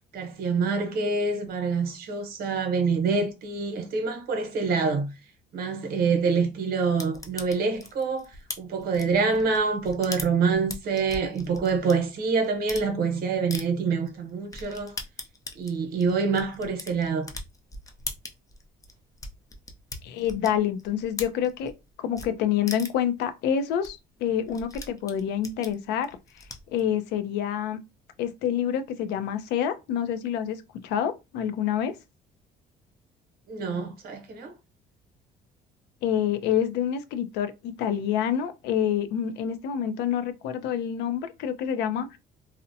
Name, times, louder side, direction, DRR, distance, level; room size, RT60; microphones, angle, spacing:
voice 1, 0.1-5.1 5.5-8.2 8.6-14.9 15.6-17.3 33.5-34.5, right 4 dB, 65° right, 0.8 m, -26 dB
sound 1, 7.0-11.9 12.4-12.9 13.5-13.6 14.1-14.2 14.5-21.8 22.1-22.3 22.7-23.1 23.5-23.6 23.8-23.9 24.1-26.8, left 3 dB, 20° left, 0.5 m, -39 dB
voice 2, 20.0-21.7 22.0-26.2 26.7-27.8 28.2-31.9 36.0-42.2, left 9 dB, 85° left, 0.5 m, -27 dB
2.7 x 2.0 x 2.6 m
cardioid pair, 110°, 17 cm